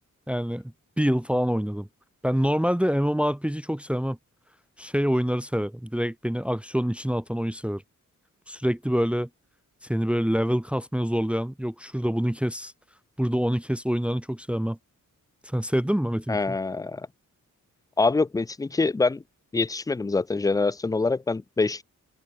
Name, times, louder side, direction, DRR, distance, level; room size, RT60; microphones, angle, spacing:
voice 1, 0.3-0.6 1.0-1.9 2.2-4.2 4.8-7.8 8.5-9.3 9.9-12.7 13.2-14.8 15.5-16.6, equal, 5° right, 0.9 m, -26 dB
voice 2, 16.3-17.1 18.0-19.2 19.5-21.8, left 3 dB, 10° left, 0.3 m, -25 dB
wide cardioid pair, 150°, 32 cm